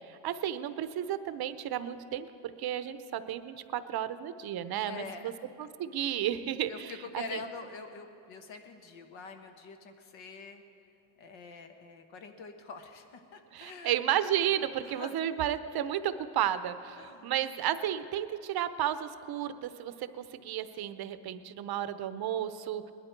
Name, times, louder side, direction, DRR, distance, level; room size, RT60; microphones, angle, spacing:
voice 1, 0.1-5.0 5.6-7.2 13.5-22.9, right 11 dB, 50° right, 12 dB, 0.7 m, -33 dB
voice 2, 4.8-5.7 6.7-10.6 11.2-14.0 14.6-15.2 17.0-17.3, left 4 dB, 70° left, 6 dB, 1.5 m, -45 dB
20.5 x 12.0 x 4.5 m, 2.7 s
cardioid pair, 115°, 47 cm